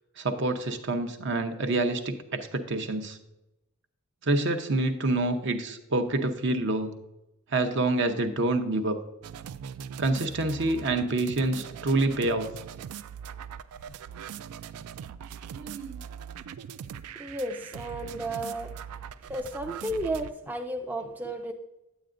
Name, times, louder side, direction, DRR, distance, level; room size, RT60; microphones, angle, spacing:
voice 1, 0.2-3.2 4.2-6.9 7.5-9.0 10.0-12.5 15.5-16.0, right 2 dB, 55° right, 7 dB, 0.7 m, -27 dB
sound 1, 9.2-20.3, right 8 dB, 80° right, 0.3 m, -41 dB
voice 2, 17.2-18.7 19.3-21.5, right 1 dB, 10° right, 4 dB, 0.4 m, -33 dB
9.1 x 8.8 x 2.5 m, 0.91 s
head